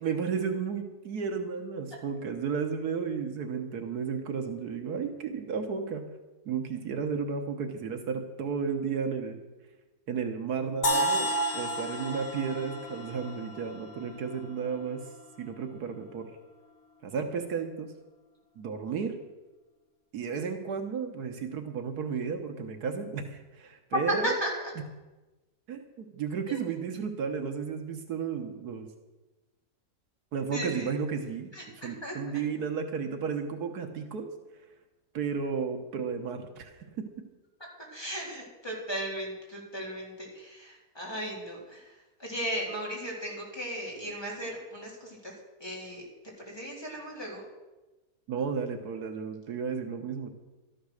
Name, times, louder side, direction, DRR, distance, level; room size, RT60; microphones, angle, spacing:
voice 1, 0.0-6.0 6.5-9.4 10.1-15.1 15.4-16.3 17.0-17.9 18.6-19.2 20.1-24.4 25.7-28.9 30.3-34.3 35.1-37.0 48.3-50.3, right 6 dB, 85° right, 6 dB, 1.7 m, -33 dB
sound 1, 10.8-14.7, right 1 dB, 75° left, 1.9 m, -31 dB
voice 2, 23.9-24.5 26.5-26.6 30.5-30.9 31.5-32.2 37.9-41.8 42.2-45.3 45.6-46.0 46.5-47.4, equal, 15° left, -3 dB, 3.8 m, -35 dB
13.0 x 11.0 x 6.5 m, 1.1 s
omnidirectional pair, 1.6 m